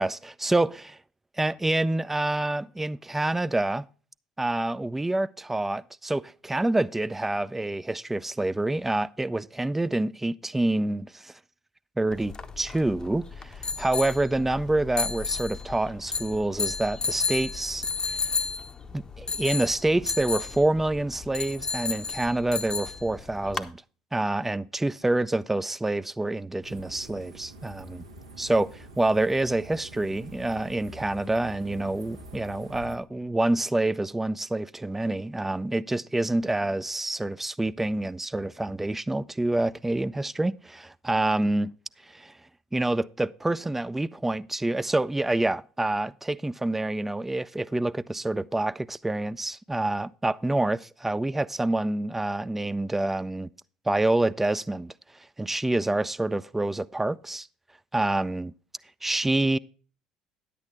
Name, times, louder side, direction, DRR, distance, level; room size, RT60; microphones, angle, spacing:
voice 1, 0.0-1.0 1.4-3.9 4.4-11.3 12.0-18.2 18.9-23.8 24.1-28.0 28.4-41.7 42.0-42.3 42.7-53.5 53.9-54.9 55.4-57.5 57.9-58.5 59.0-59.6, right 2 dB, 10° right, 0.4 m, -27 dB
sound 1, 12.1-23.7, left 4 dB, 30° left, 0.8 m, -33 dB
sound 2, 26.6-33.0, right 2 dB, 85° right, 1.1 m, -46 dB
10.5 x 8.4 x 3.5 m
figure-of-eight pair, 60°, 3 cm